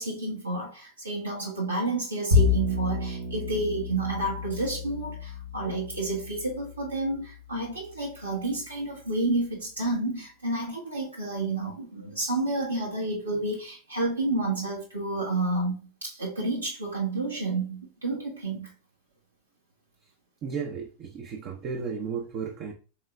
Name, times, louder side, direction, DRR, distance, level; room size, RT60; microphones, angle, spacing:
voice 1, 0.0-15.7 16.0-18.7, right 2 dB, 85° right, 1.2 m, -30 dB
Bowed string instrument, 2.3-8.7, left 5 dB, 55° right, 1.1 m, -30 dB
voice 2, 20.4-22.7, right 6 dB, 35° right, 0.6 m, -34 dB
5.5 x 3.7 x 2.2 m
figure-of-eight pair, 90°, 0 cm